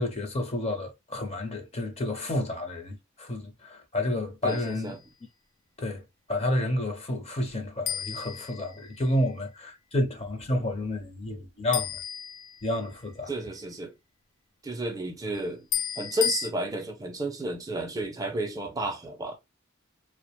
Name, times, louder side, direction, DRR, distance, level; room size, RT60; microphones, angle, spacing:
voice 1, 0.0-5.0 5.8-12.0 12.6-13.3, left 1 dB, 30° left, 0.6 m, -30 dB
voice 2, 4.4-5.0 10.5-10.6 13.3-13.9 14.6-15.7 16.0-19.4, right 1 dB, 20° right, 0.4 m, -32 dB
sound 1, 4.5-4.9 7.9-9.2 11.7-13.0 15.7-16.5, left 9 dB, 75° left, 0.4 m, -33 dB
2.4 x 2.0 x 2.8 m
head